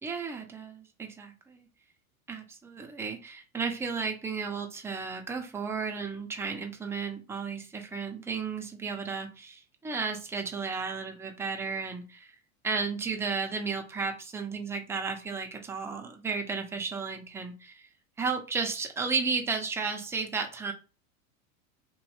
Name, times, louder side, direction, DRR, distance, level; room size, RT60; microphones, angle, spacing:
voice 1, 0.0-1.7 2.3-12.3 12.6-17.8 18.2-20.7, right 5 dB, 5° right, 3 dB, 0.4 m, -33 dB
3.0 x 2.7 x 3.0 m, 0.33 s
hypercardioid pair, 105°, 42 cm